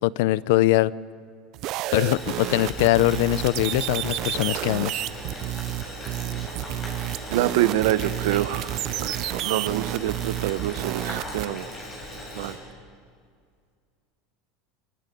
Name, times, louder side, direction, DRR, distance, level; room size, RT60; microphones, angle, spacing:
voice 1, 0.0-0.9 1.9-5.0, left 17 dB, 70° left, 19 dB, 0.5 m, -22 dB
sound 1, 1.5-11.5, right 16 dB, 45° right, 0.6 m, -31 dB
Boiling, 1.9-12.5, left 1 dB, 20° left, 7.9 m, -38 dB
voice 2, 7.3-11.7 12.3-12.6, right 13 dB, 80° right, 13 dB, 1.0 m, -26 dB
27.5 x 24.5 x 5.4 m, 2.1 s
supercardioid pair, 155°, 0 cm